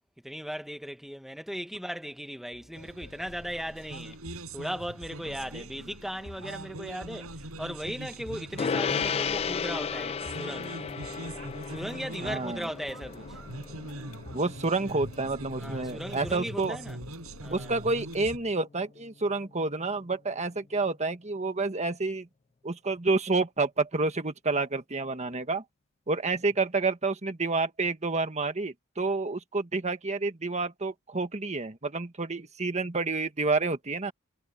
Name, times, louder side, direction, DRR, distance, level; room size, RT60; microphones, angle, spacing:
voice 1, 0.2-4.2 4.5-10.7 11.7-13.4 15.6-17.0 17.4-17.8, equal, ahead, 1.3 m, -37 dB
sound 1, 2.5-18.5, left 1 dB, 80° left, 2.9 m, -51 dB
sound 2, 2.7-18.4, right 1 dB, 85° right, 5.8 m, -43 dB
Gong, 8.6-18.3, left 6 dB, 30° left, 0.3 m, -35 dB
voice 2, 12.2-12.7 14.3-16.8 17.5-22.3 22.6-25.6 26.1-34.1, right 3 dB, 30° right, 1.5 m, -29 dB
head